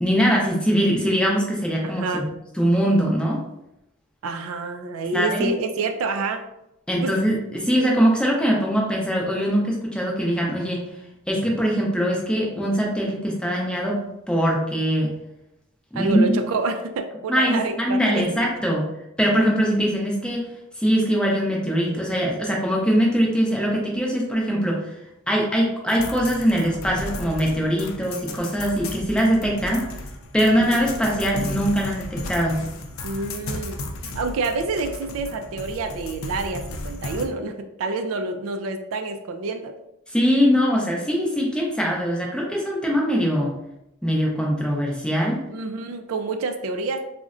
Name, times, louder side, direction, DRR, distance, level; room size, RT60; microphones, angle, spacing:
voice 1, 0.0-2.2 2.6-3.4 5.1-5.5 6.9-10.8 11.3-15.1 15.9-16.3 17.3-18.8 19.2-20.5 20.8-24.9 25.3-29.9 30.3-32.6 40.1-43.6 44.0-45.4, equal, 5° left, -2 dB, 0.5 m, -22 dB
voice 2, 1.8-2.3 4.2-6.5 7.0-7.1 7.7-7.9 15.9-18.5 30.6-30.8 33.0-39.7 45.5-47.0, right 3 dB, 70° right, 7 dB, 0.3 m, -28 dB
sound 1, 25.9-37.3, left 2 dB, 70° left, 0.4 m, -34 dB
3.7 x 2.1 x 2.4 m, 0.85 s
head